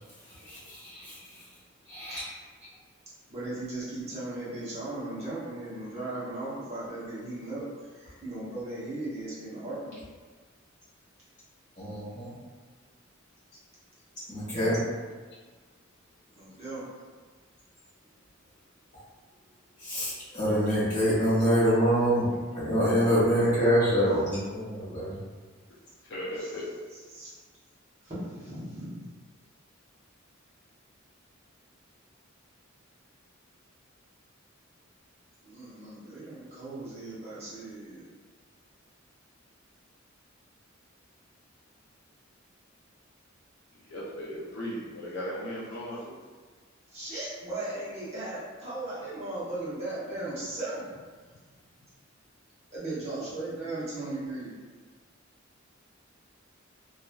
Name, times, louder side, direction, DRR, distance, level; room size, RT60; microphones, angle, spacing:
voice 1, 0.4-1.2 1.9-2.2 11.8-12.3 14.3-14.8 19.8-25.1, equal, 35° left, -10 dB, 1.4 m, -25 dB
voice 2, 2.0-2.4 3.3-10.0 16.4-16.8 26.3-27.3 28.0-29.0 35.4-38.1 46.9-50.9 52.7-54.5, right 2 dB, 30° right, -10 dB, 0.9 m, -37 dB
voice 3, 26.1-26.7 43.9-46.1, equal, 55° left, -6 dB, 0.5 m, -36 dB
3.0 x 2.4 x 2.2 m, 1.5 s
head